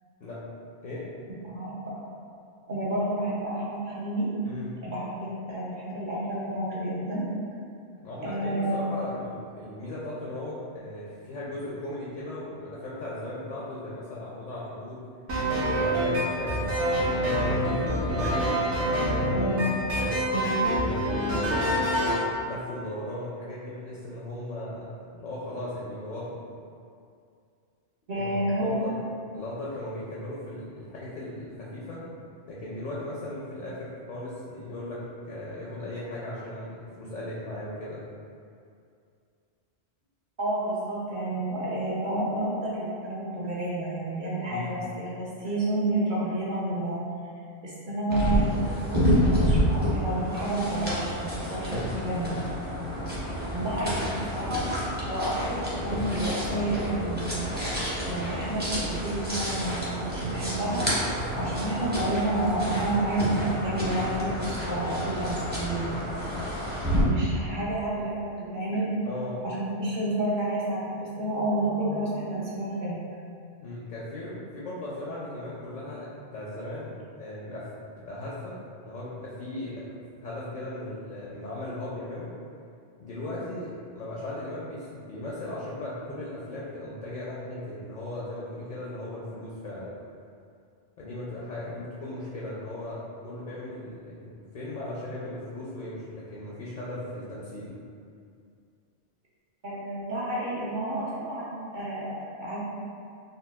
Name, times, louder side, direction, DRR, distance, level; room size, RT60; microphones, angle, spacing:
voice 1, 1.4-1.9 2.7-4.3 4.8-7.3 7.9-8.9 19.3-19.6 20.3-20.5 28.1-28.8 40.4-44.8 45.1-47.0 47.6-52.4 53.5-61.0 61.3-66.0 67.0-68.9 69.4-73.0 99.6-102.6, right 1 dB, 55° right, -7 dB, 0.6 m, -30 dB
voice 2, 4.4-4.8 8.0-15.1 15.7-18.7 18.9-19.5 19.8-22.2 22.4-24.8 25.1-26.4 28.1-29.0 29.3-32.0 32.5-38.0 44.5-44.8 51.7-51.9 69.0-69.4 73.6-76.9 77.2-77.7 78.0-78.6 78.8-79.9 80.2-82.3 83.0-89.9 91.0-97.8, left 1 dB, 55° left, -7 dB, 0.5 m, -37 dB
sound 1, 15.3-22.2, right 1 dB, 85° right, 1.0 m, -26 dB
sound 2, 48.1-67.0, equal, 15° right, 0.4 m, -29 dB
3.7 x 2.2 x 2.2 m, 2.4 s
omnidirectional pair, 1.2 m